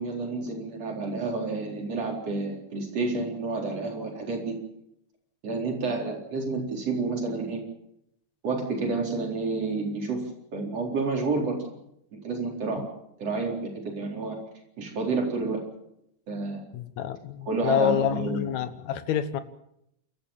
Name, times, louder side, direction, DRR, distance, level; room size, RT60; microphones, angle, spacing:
voice 1, 0.0-4.6 5.4-7.6 8.4-11.6 12.1-12.8 13.2-14.4 14.8-15.6 16.3-16.6 17.5-18.5, right 3 dB, 55° right, 0 dB, 5.3 m, -30 dB
voice 2, 16.7-19.4, left 9 dB, 75° left, 11 dB, 2.5 m, -27 dB
28.5 x 14.0 x 7.4 m, 0.79 s
omnidirectional pair, 3.3 m